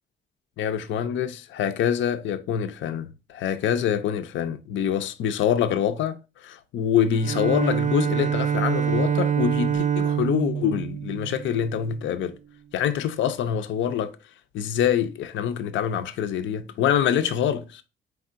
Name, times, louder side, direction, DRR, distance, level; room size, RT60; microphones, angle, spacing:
voice 1, 0.6-12.4 12.7-14.2 14.5-17.8, left 9 dB, 70° left, 0.5 m, -25 dB
Bowed string instrument, 7.1-12.1, right 8 dB, 40° right, 0.4 m, -25 dB
4.6 x 3.5 x 2.5 m
cardioid pair, 90°, 20 cm